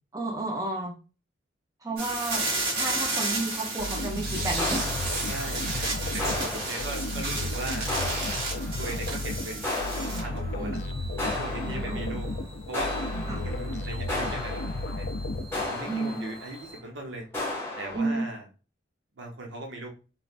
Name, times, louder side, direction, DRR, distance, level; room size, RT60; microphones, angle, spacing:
voice 1, 0.1-1.0 1.8-2.4 2.7-4.9 6.8-6.9 10.6-10.8 11.7-12.2 13.3-13.5 15.9-16.2 17.9-18.3, right 2 dB, 20° right, 0 dB, 0.5 m, -32 dB
sound 1, 2.0-10.4 10.7-16.8, right 2 dB, 55° right, 1.3 m, -34 dB
sound 2, 3.8-16.0, left 1 dB, 60° left, 0.3 m, -34 dB
sound 3, 4.6-5.8 6.2-7.5 7.9-9.1 9.6-10.8 11.2-12.3 12.7-16.7 17.3-18.0, left 2 dB, 15° left, 0.8 m, -35 dB
voice 2, 5.3-7.9 8.8-10.8 11.2-12.3 12.7-12.9 13.4-15.1 15.7-17.3 17.8-18.4 19.2-19.9, right 2 dB, 85° right, 2 dB, 0.8 m, -38 dB
3.2 x 2.1 x 2.4 m, 0.33 s
head